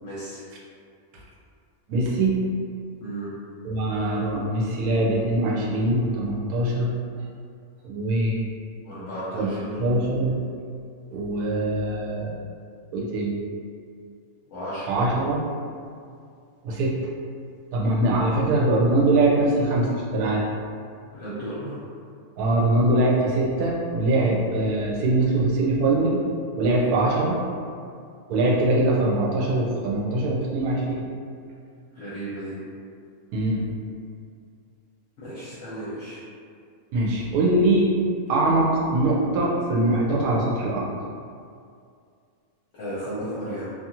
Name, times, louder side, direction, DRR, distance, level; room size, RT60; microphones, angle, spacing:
voice 1, 0.0-0.4 3.0-3.3 8.8-9.8 14.5-14.9 21.1-21.8 31.9-32.6 35.2-36.2 42.7-43.7, right 1 dB, 65° left, -10 dB, 1.0 m, -34 dB
voice 2, 1.9-2.4 3.6-6.9 7.8-8.4 9.3-9.5 9.8-10.4 11.1-12.3 12.9-13.4 14.9-15.4 16.6-17.0 17.7-20.4 22.4-26.3 26.6-27.4 28.3-31.1 33.3-33.7 36.9-37.9 38.3-40.9, right 2 dB, 90° right, -3 dB, 1.1 m, -22 dB
2.6 x 2.4 x 2.8 m, 2.3 s
omnidirectional pair, 1.5 m